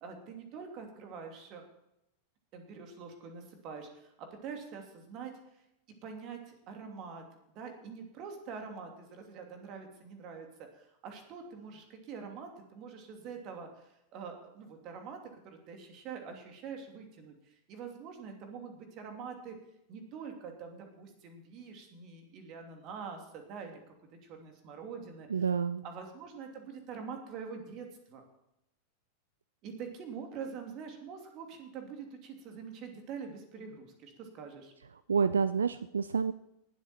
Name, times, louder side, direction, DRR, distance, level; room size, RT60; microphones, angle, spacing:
voice 1, 0.0-1.6 2.5-5.6 6.0-7.2 7.5-19.5 19.9-23.9 24.2-25.5 25.8-28.2 29.6-34.7, right 6 dB, 40° right, 4 dB, 2.8 m, -45 dB
voice 2, 25.3-25.8 35.1-36.3, right 6 dB, 70° right, 15 dB, 0.4 m, -28 dB
19.0 x 8.3 x 4.4 m, 0.84 s
figure-of-eight pair, 90°, 0 cm